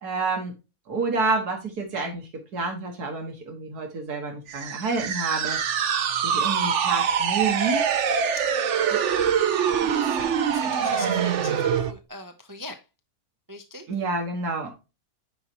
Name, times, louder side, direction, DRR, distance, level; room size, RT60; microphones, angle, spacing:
voice 1, 0.0-0.5 0.9-5.6 6.2-7.8 8.9-9.0 13.9-14.7, right 3 dB, 90° right, 2.1 m, -28 dB
sound 1, 4.5-11.9, right 7 dB, 55° right, 1.0 m, -24 dB
voice 2, 9.6-12.8 13.5-13.9, left 2 dB, 20° right, 0.6 m, -41 dB
9.8 x 5.4 x 2.9 m
omnidirectional pair, 1.6 m